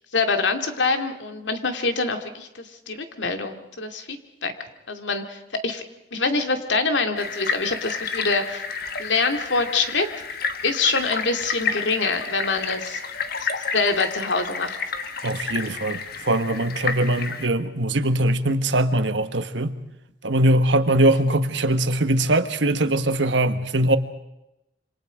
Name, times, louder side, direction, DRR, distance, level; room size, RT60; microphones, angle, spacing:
voice 1, 0.1-4.5 4.9-5.8 6.1-8.6 9.0-10.1 10.6-13.0 13.4-13.5 13.7-14.8, left 3 dB, 85° left, 7 dB, 2.4 m, -25 dB
sound 1, 7.2-17.5, left 5 dB, 55° left, 1.5 m, -30 dB
voice 2, 15.2-19.8 20.2-24.0, right 1 dB, 85° right, 10 dB, 1.5 m, -21 dB
27.0 x 25.5 x 5.1 m, 0.89 s
head